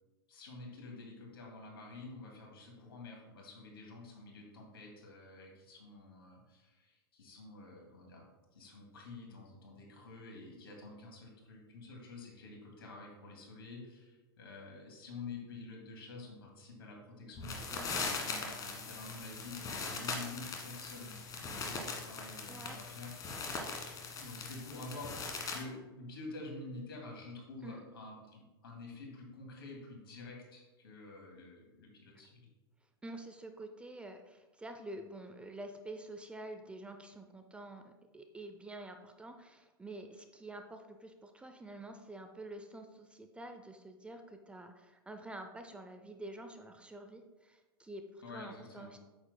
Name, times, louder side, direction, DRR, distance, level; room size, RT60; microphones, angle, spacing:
voice 1, 0.3-8.3 8.5-23.1 24.2-32.5 48.2-48.9, left 3 dB, 75° left, 0 dB, 2.3 m, -49 dB
sound 1, 17.4-25.6, left 4 dB, 30° left, 1.5 m, -40 dB
voice 2, 22.5-22.8 27.6-27.8 33.0-49.0, right 1 dB, 10° right, 5 dB, 0.5 m, -48 dB
8.7 x 7.1 x 2.2 m, 1.2 s
hypercardioid pair, 105°, 13 cm